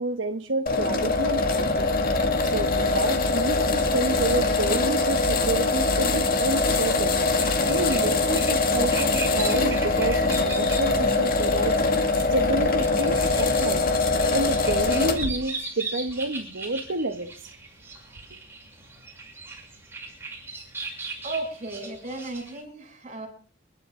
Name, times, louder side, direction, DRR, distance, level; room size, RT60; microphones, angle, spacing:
voice 1, 0.0-1.9 2.4-13.8 14.3-17.6, right 2 dB, 65° right, 1.2 m, -29 dB
sound 1, 0.7-15.3, left 3 dB, 50° left, 2.2 m, -23 dB
sound 2, 7.4-22.6, right 3 dB, 10° right, 6.7 m, -39 dB
voice 2, 21.2-23.3, right 2 dB, 35° right, 8.0 m, -34 dB
29.0 x 12.0 x 3.8 m
head